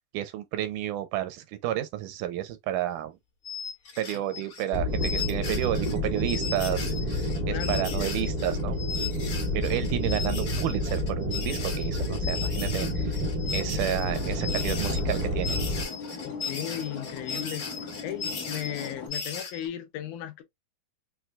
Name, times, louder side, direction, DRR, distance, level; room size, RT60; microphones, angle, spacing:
voice 1, 0.1-3.2 4.0-7.2 7.5-8.8 9.5-13.2 13.5-15.6, right 13 dB, 80° right, 2.0 m, -31 dB
sound 1, 3.5-19.7, left 5 dB, 45° left, 2.2 m, -37 dB
sound 2, 4.7-15.8, left 1 dB, 25° left, 1.0 m, -29 dB
voice 2, 7.4-8.5 16.2-17.6 18.0-20.4, left 11 dB, 80° left, 2.1 m, -36 dB
sound 3, 14.0-19.1, left 4 dB, 60° left, 0.9 m, -40 dB
5.9 x 2.6 x 2.2 m
omnidirectional pair, 3.7 m